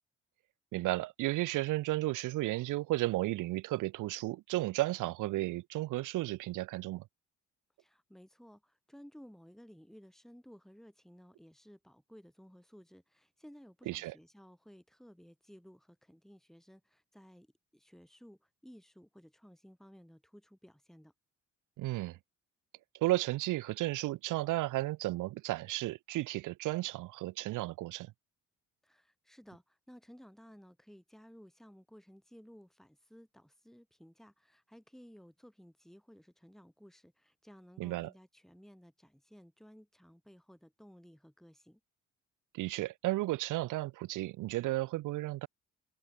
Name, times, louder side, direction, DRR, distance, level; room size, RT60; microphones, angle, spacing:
voice 1, 0.7-7.0 13.9-14.1 21.8-22.2 23.0-28.1 37.8-38.1 42.5-45.5, right 18 dB, 85° right, 0.8 m, -33 dB
voice 2, 7.8-21.1 28.8-41.8, equal, ahead, 5.4 m, -57 dB
cardioid pair, 90°, 30 cm